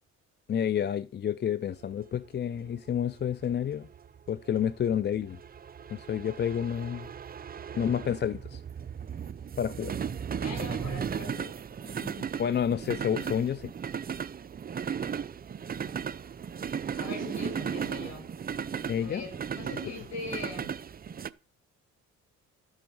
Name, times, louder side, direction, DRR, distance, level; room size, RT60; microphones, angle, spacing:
voice 1, 0.5-3.9 4.3-5.4 5.9-7.1 7.7-8.6 9.6-9.9 12.4-13.7 18.9-19.2, left 9 dB, 35° left, 0.5 m, -29 dB
sound 1, 1.8-21.3, right 7 dB, 30° right, 0.5 m, -36 dB
voice 2, 10.4-11.5 11.8-12.2 17.0-18.3 19.0-20.8, left 4 dB, 60° left, 6.4 m, -41 dB
12.0 x 7.8 x 5.4 m
cardioid pair, 90°, 30 cm